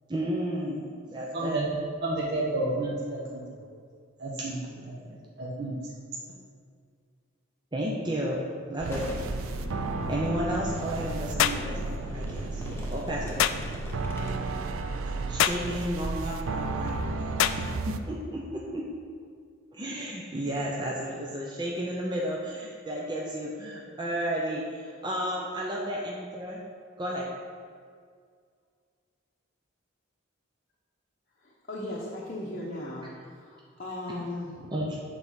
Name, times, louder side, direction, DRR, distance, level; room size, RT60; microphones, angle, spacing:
voice 1, 0.1-1.6 4.8-5.2 7.7-8.4 8.7-9.1 10.1-13.5 15.1-18.9 19.7-26.6 27.0-27.3 34.7-35.0, equal, 20° right, -4 dB, 0.7 m, -33 dB
voice 2, 1.3-3.7 4.2-4.6 5.4-5.8, right 2 dB, 55° right, -7 dB, 1.2 m, -30 dB
Boom, 8.8-18.4, equal, 10° left, 0.9 m, -42 dB
sound 1, 8.8-18.0, right 3 dB, 85° right, 0.5 m, -33 dB
sound 2, 11.4-11.7 13.4-13.6 15.4-15.7 17.4-17.6, left 10 dB, 80° left, 0.3 m, -24 dB
voice 3, 31.4-34.9, left 1 dB, 45° left, -5 dB, 0.9 m, -37 dB
7.8 x 4.1 x 6.3 m, 2.1 s
head